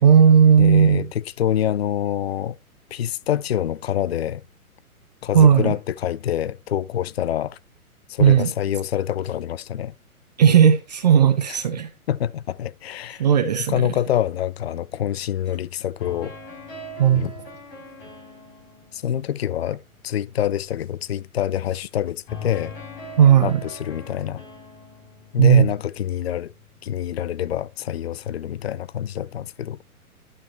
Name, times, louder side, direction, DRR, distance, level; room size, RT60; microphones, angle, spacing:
voice 1, 0.0-1.1 5.3-5.8 8.2-8.5 10.4-11.9 13.2-13.9 17.0-17.3 23.2-23.6 25.4-25.6, right 8 dB, 30° right, 0.6 m, -15 dB
voice 2, 0.6-2.6 2.9-4.4 5.2-7.6 8.1-9.9 12.1-13.3 13.7-16.3 17.1-17.3 18.9-22.7 23.4-24.4 25.3-26.5 26.8-29.8, left 10 dB, 45° left, 0.4 m, -26 dB
sound 1, 16.0-20.2 22.3-27.2, left 2 dB, 30° left, 5.9 m, -41 dB
11.5 x 5.9 x 2.7 m
figure-of-eight pair, 125°, 44 cm